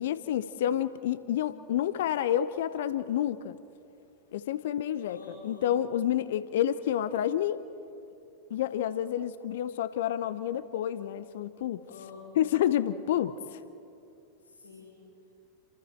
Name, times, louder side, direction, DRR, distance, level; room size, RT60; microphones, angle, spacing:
voice 1, 0.0-3.6 4.3-7.6 8.5-11.8 12.4-13.6, left 11 dB, 55° left, 14 dB, 0.8 m, -29 dB
voice 2, 5.0-5.7 11.9-12.6 14.4-15.0, left 4 dB, 75° left, -7 dB, 6.1 m, -47 dB
29.0 x 27.0 x 4.5 m, 2.7 s
figure-of-eight pair, 90°, 0 cm